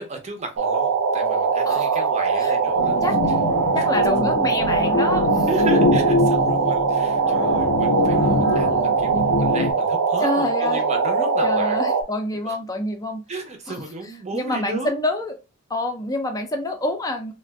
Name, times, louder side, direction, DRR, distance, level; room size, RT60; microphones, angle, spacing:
voice 1, 0.0-3.0 3.7-3.9 5.5-11.8 12.4-12.6 13.3-14.9, right 2 dB, 30° right, 0.6 m, -33 dB
sound 1, 0.6-12.0, right 5 dB, 70° right, 0.4 m, -21 dB
voice 2, 1.6-2.1 2.4-2.5 3.0-3.4 3.7-5.5 7.3-7.5 10.2-10.8 11.4-13.2 13.7-13.8 14.3-15.3 15.7-17.3, left 1 dB, 15° left, 0.4 m, -27 dB
sound 2, 2.8-9.7, left 3 dB, 85° left, 0.5 m, -23 dB
2.4 x 2.2 x 3.4 m
head